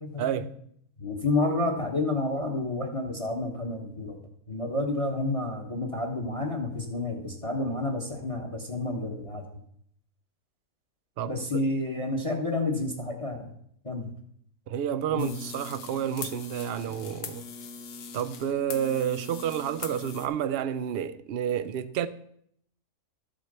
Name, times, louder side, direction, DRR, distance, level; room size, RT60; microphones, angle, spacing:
voice 1, 0.2-0.5 11.2-11.4 14.7-17.4 18.1-22.1, right 9 dB, 70° right, 0.5 m, -30 dB
voice 2, 1.0-4.2 4.5-9.4 11.3-13.5 13.8-14.1 15.1-15.3, left 2 dB, 25° left, 1.1 m, -30 dB
sound 1, 15.2-20.3, left 6 dB, 85° left, 1.5 m, -41 dB
12.5 x 4.5 x 6.7 m
omnidirectional pair, 1.6 m